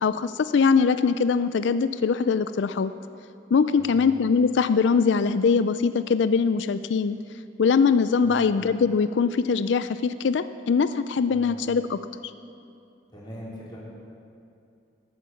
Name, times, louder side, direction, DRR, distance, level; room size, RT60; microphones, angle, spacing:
voice 1, 0.0-2.9 3.5-7.2 7.6-12.0, left 5 dB, 70° left, 12 dB, 0.4 m, -22 dB
voice 2, 3.7-4.1 8.2-8.5 11.3-11.6 13.1-13.8, equal, 25° left, -7 dB, 3.6 m, -41 dB
19.0 x 8.5 x 7.2 m, 2.5 s
head